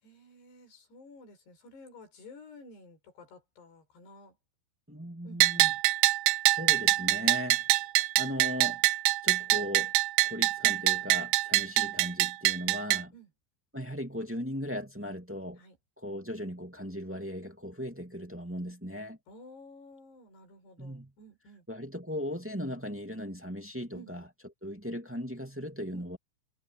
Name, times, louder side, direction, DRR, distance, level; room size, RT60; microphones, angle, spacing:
voice 1, 0.0-4.4 5.2-5.7 13.1-13.3 15.6-15.8 19.3-21.7 23.9-24.1 25.9-26.1, left 2 dB, 70° left, 8.8 m, -52 dB
voice 2, 4.9-5.7 6.5-7.6 8.2-8.8 9.2-9.9 10.2-13.1 13.7-15.6 16.0-19.2 20.8-21.1 21.7-24.2 24.6-26.2, equal, 5° right, 1.3 m, -37 dB
Bell, 5.4-13.0, right 18 dB, 80° right, 2.6 m, -25 dB
omnidirectional pair, 5.0 m